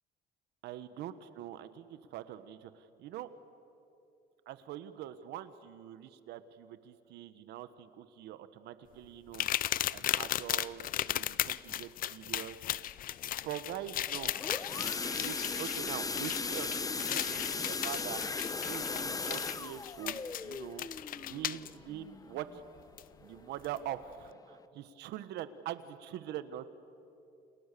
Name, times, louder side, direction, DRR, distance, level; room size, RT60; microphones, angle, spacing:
voice 1, 0.6-3.3 4.5-9.5 9.9-12.6 13.4-14.3 15.2-18.2 18.6-22.6 23.2-26.7, right 11 dB, 80° right, 12 dB, 1.5 m, -43 dB
sound 1, 9.3-21.7 23.0-23.1 23.6-23.8, left 12 dB, 55° left, 0.6 m, -36 dB
sound 2, 14.1-22.8 23.2-23.5 23.8-23.9 24.4-24.5, left 4 dB, 20° left, 1.0 m, -37 dB
29.5 x 28.5 x 7.0 m, 2.8 s
cardioid pair, 110°, 17 cm